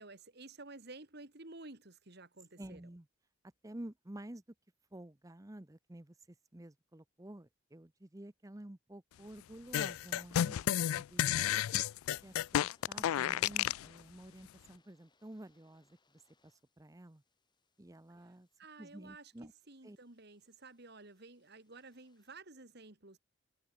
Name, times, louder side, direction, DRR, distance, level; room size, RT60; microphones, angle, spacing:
voice 1, 0.0-2.8 18.6-23.2, right 3 dB, 50° right, 2.2 m, -53 dB
voice 2, 2.6-3.1 3.6-4.4 4.9-11.4 12.2-16.0 16.4-17.2 17.8-18.5 18.8-19.5 19.8-20.0, right 1 dB, 15° right, 0.7 m, -50 dB
sound 1, 9.7-13.9, left 11 dB, 85° left, 0.3 m, -31 dB
sound 2, 11.3-22.4, left 3 dB, 20° left, 5.5 m, -75 dB
head